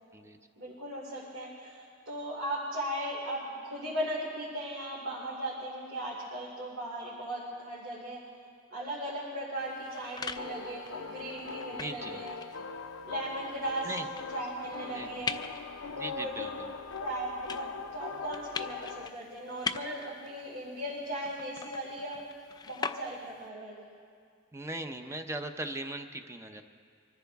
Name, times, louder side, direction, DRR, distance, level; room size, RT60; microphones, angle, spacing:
voice 1, 0.6-8.2 8.7-12.3 13.0-15.4 15.9-16.5 17.0-22.2 22.6-23.8, right 1 dB, 70° right, -7 dB, 3.1 m, -37 dB
sound 1, 9.6-23.5, left 5 dB, 20° left, 0.4 m, -43 dB
sound 2, 10.4-19.1, left 5 dB, 75° left, 0.6 m, -42 dB
voice 2, 11.7-12.2 13.8-14.1 14.8-15.1 15.9-16.7 24.5-26.6, right 1 dB, 15° right, 6 dB, 0.7 m, -39 dB
24.5 x 14.0 x 3.5 m, 2.2 s
head